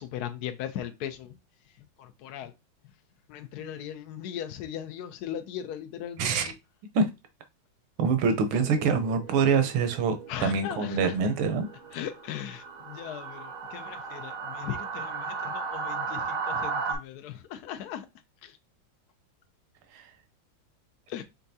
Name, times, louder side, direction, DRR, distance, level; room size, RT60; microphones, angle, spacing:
voice 1, 0.0-1.3 2.0-2.5 3.3-6.6 10.3-11.2 11.9-18.1 18.4-18.6 21.1-21.2, left 10 dB, 75° left, 0.9 m, -38 dB
voice 2, 8.0-11.7 19.9-20.0, right 5 dB, 80° right, 1.6 m, -25 dB
sound 1, 8.5-17.0, right 5 dB, 60° right, 0.9 m, -36 dB
5.6 x 3.5 x 2.7 m
omnidirectional pair, 2.3 m